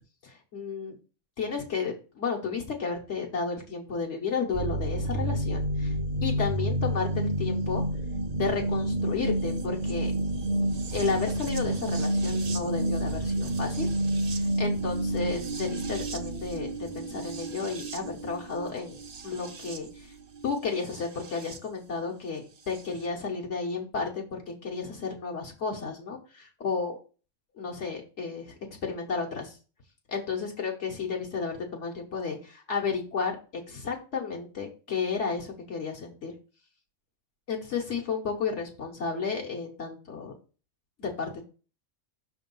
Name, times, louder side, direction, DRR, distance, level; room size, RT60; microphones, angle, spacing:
voice 1, 0.2-1.0 1.4-5.9 6.2-7.8 8.3-10.1 10.9-13.9 14.2-19.0 19.2-20.1 20.4-27.0 27.6-28.5 28.8-29.6 30.1-33.4 33.7-36.3 37.5-40.3 41.0-41.4, left 5 dB, 65° left, 0 dB, 1.4 m, -32 dB
sound 1, 4.5-21.6 22.7-22.8, right 1 dB, 45° right, 0.5 m, -30 dB
6.0 x 3.5 x 5.4 m, 0.35 s
omnidirectional pair, 1.3 m